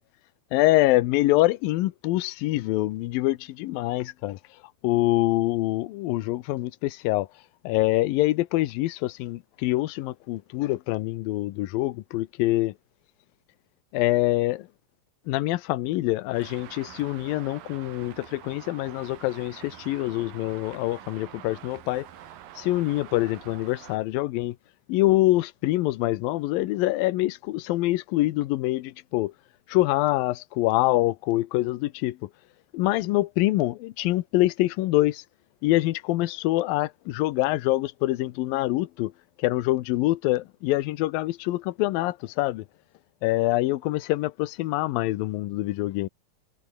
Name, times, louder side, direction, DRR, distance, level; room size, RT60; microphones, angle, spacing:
voice 1, 0.5-7.3 7.6-12.7 13.9-14.7 15.3-22.1 22.6-24.6 24.9-29.3 29.7-32.3 32.7-35.2 35.6-39.1 39.4-42.7 43.2-46.1, left 17 dB, 85° left, 2.6 m, -25 dB
Traffic noise roadway noise, 16.3-24.0, right 12 dB, 80° right, 3.2 m, -46 dB
omnidirectional pair, 4.1 m